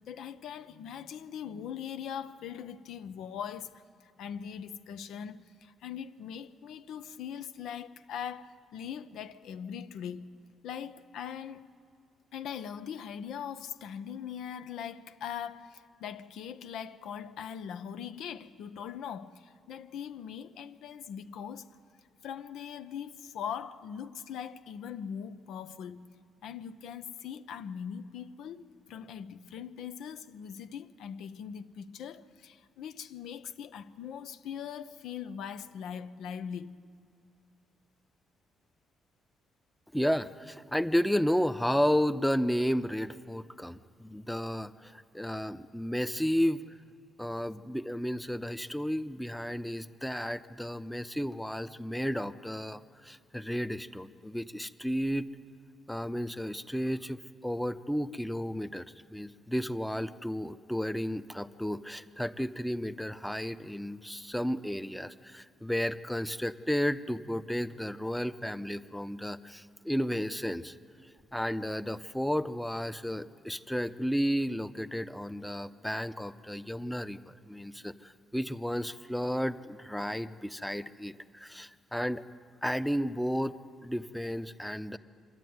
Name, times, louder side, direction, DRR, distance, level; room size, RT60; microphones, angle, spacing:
voice 1, 0.1-10.3 10.6-11.7 12.3-21.8 22.2-26.1 26.4-28.6 28.9-36.8, left 8 dB, 80° left, 0.7 m, -41 dB
voice 2, 39.9-46.6 47.2-55.3 55.9-70.8 71.3-82.2 82.6-83.5 83.8-85.0, equal, 5° left, 0.7 m, -32 dB
26.0 x 12.0 x 9.4 m
cardioid pair, 90°, 0 cm